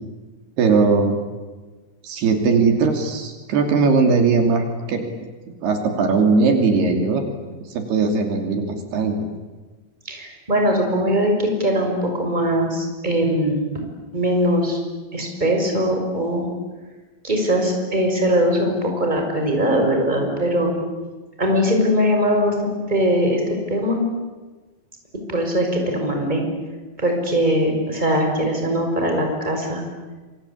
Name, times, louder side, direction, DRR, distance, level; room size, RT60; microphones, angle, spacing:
voice 1, 0.6-1.2 2.0-5.0 5.6-7.2 7.7-9.3, right 4 dB, 75° right, 4 dB, 4.9 m, -19 dB
voice 2, 10.0-13.6 14.1-14.8 15.1-16.5 17.2-20.7 21.4-23.4 23.7-24.0 25.3-26.4 27.0-29.8, equal, 10° right, 2 dB, 5.9 m, -21 dB
27.5 x 25.0 x 8.6 m, 1.3 s
omnidirectional pair, 4.7 m